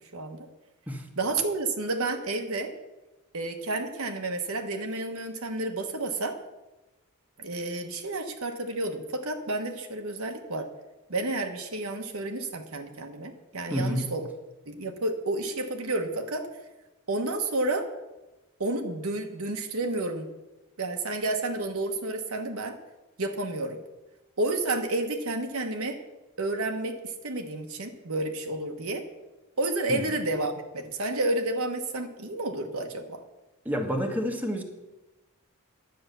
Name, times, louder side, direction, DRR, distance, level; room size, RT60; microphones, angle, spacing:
voice 1, 0.1-0.5 1.2-2.7 3.3-6.4 7.4-10.7 11.1-14.3 14.7-16.5 17.1-17.9 18.6-20.3 20.8-22.8 23.2-23.8 24.4-26.0 26.4-29.1 29.6-33.2, right 2 dB, 65° right, 5 dB, 1.3 m, -30 dB
voice 2, 13.7-14.1 29.9-30.0 33.6-34.6, equal, 5° right, 2 dB, 1.3 m, -29 dB
10.5 x 8.7 x 6.7 m, 1.1 s
head